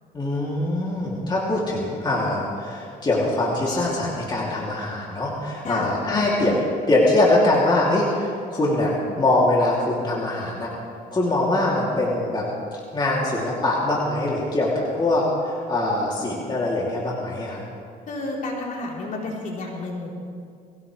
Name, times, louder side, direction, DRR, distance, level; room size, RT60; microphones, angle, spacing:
voice 1, 0.1-6.6 6.9-8.9 9.2-10.7 11.1-12.4 12.9-17.6, left 2 dB, 25° left, -5 dB, 3.1 m, -23 dB
voice 2, 18.1-20.1, left 2 dB, 50° left, -3 dB, 4.1 m, -30 dB
21.5 x 17.0 x 3.4 m, 2.3 s
cardioid pair, 110°, 17 cm